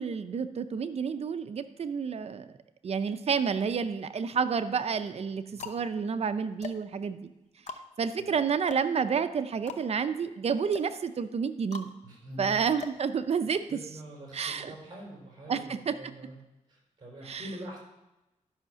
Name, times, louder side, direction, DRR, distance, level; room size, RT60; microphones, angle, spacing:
voice 1, 0.0-2.5 2.8-7.3 8.0-11.9 12.4-13.6 14.3-14.7 15.5-15.9 17.3-17.4, right 6 dB, 55° right, 10 dB, 0.6 m, -30 dB
sound 1, 3.8-4.4 5.0-13.8, left 5 dB, 70° left, 0.8 m, -46 dB
voice 2, 12.0-12.6 13.7-16.4 16.7-17.8, right 1 dB, 35° right, -2 dB, 4.6 m, -44 dB
11.5 x 5.7 x 6.3 m, 0.97 s
wide cardioid pair, 115°, 13 cm